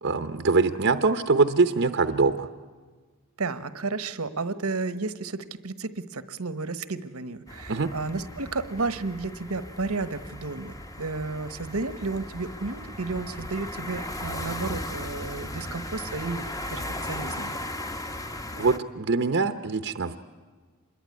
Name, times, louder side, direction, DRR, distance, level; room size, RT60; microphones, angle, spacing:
voice 1, 0.0-2.5 7.7-7.9 18.6-20.2, right 4 dB, 55° right, 9 dB, 0.8 m, -23 dB
voice 2, 3.4-17.6, right 3 dB, 85° right, 13 dB, 1.2 m, -32 dB
sound 1, 7.5-18.8, left 1 dB, 15° left, 1.1 m, -37 dB
26.5 x 21.5 x 9.8 m, 1.4 s
head